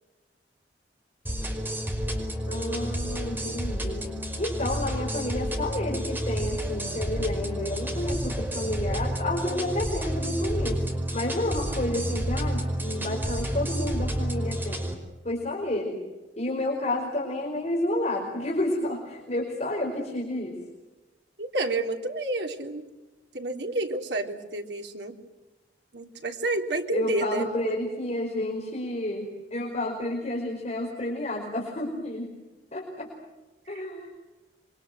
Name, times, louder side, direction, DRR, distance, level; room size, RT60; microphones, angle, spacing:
sound 1, 1.3-14.9, equal, 10° right, 5.0 m, -30 dB
voice 1, 2.5-4.1 4.4-10.8 11.1-14.9 15.2-16.0 16.4-20.6 26.9-32.3 32.7-33.1 33.7-34.1, left 1 dB, 40° left, -1 dB, 4.9 m, -30 dB
voice 2, 21.4-22.8 23.3-25.2 25.9-27.7, right 2 dB, 70° right, 3 dB, 3.3 m, -30 dB
28.0 x 24.0 x 7.8 m, 1.1 s
head